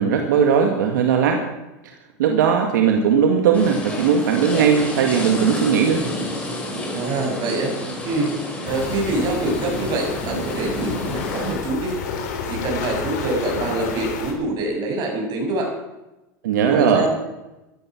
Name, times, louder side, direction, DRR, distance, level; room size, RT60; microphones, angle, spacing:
voice 1, 0.0-1.4 1.8-1.9 2.2-6.0 16.4-17.1, right 7 dB, 85° right, 3 dB, 1.9 m, -18 dB
sound 1, 3.5-11.5, left 1 dB, 15° left, 5.5 m, -30 dB
voice 2, 6.9-7.7 8.0-8.3 8.6-11.9 12.5-15.7 16.7-17.2, right 2 dB, 45° right, 1 dB, 7.0 m, -25 dB
sound 2, 8.7-14.3, left 6 dB, 75° left, 3.6 m, -30 dB
15.0 x 13.0 x 6.1 m, 0.99 s
supercardioid pair, 110°, 10 cm